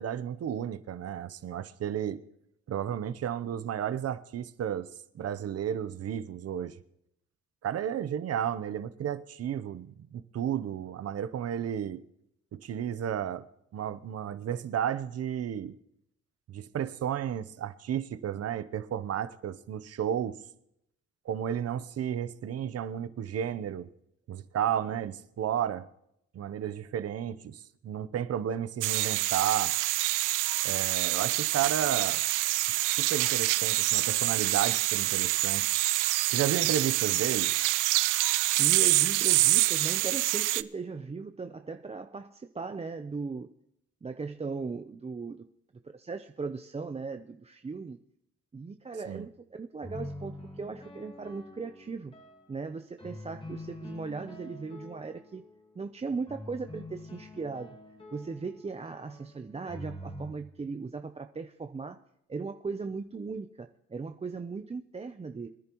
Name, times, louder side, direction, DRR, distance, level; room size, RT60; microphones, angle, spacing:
voice 1, 0.0-2.2 2.7-6.8 7.6-12.0 12.5-13.5 13.7-15.8 16.5-20.4 21.3-23.9 24.3-25.9 26.3-29.7 30.6-32.2 33.0-35.7 36.3-37.5 49.1-49.3, right 9 dB, 55° right, 0.8 m, -32 dB
sound 1, 28.8-40.6, right 18 dB, 90° right, 0.5 m, -26 dB
voice 2, 38.6-43.5 44.0-45.4 45.8-48.0 48.5-52.1 52.5-55.4 55.8-57.8 58.1-62.0 62.3-65.5, right 4 dB, 20° right, 0.6 m, -38 dB
sound 2, 49.8-52.5 53.0-55.6 56.3-60.3, left 1 dB, 15° left, 1.9 m, -45 dB
23.0 x 10.5 x 3.0 m
cardioid pair, 90°, 30 cm